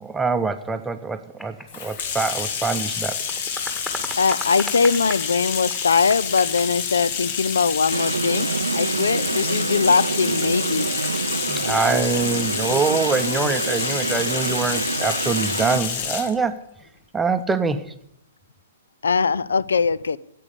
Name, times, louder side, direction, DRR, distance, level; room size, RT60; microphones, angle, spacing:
voice 1, 0.0-3.2 11.5-16.6 17.1-17.9, right 4 dB, 10° right, 8 dB, 0.7 m, -24 dB
sound 1, 1.4-2.8 3.1-5.3 5.7-6.8, equal, 10° left, 1.8 m, -36 dB
Bathtub (filling or washing), 1.7-16.3, left 7 dB, 50° left, 1.5 m, -28 dB
voice 2, 4.2-8.5 8.7-10.9 19.0-20.2, left 5 dB, 75° left, 21 dB, 0.5 m, -21 dB
sound 2, 7.9-15.8, right 4 dB, 85° right, 0.4 m, -27 dB
11.5 x 8.5 x 8.4 m, 0.72 s
figure-of-eight pair, 120°, 0 cm